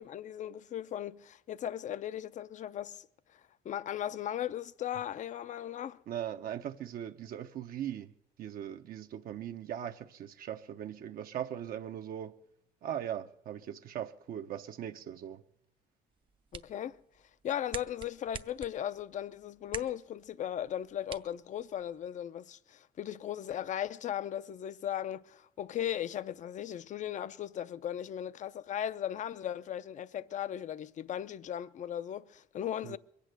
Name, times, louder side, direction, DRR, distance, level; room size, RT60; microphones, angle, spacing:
voice 1, 0.0-3.1 3.3-6.0 16.5-17.0 17.4-33.0, left 10 dB, 45° left, 0.6 m, -37 dB
voice 2, 6.1-8.1 8.4-12.4 12.8-15.4 32.8-33.0, right 10 dB, 60° right, 0.7 m, -39 dB
sound 1, 16.1-22.1, right 6 dB, 30° right, 0.6 m, -48 dB
22.0 x 8.5 x 7.7 m
cardioid pair, 110°, 17 cm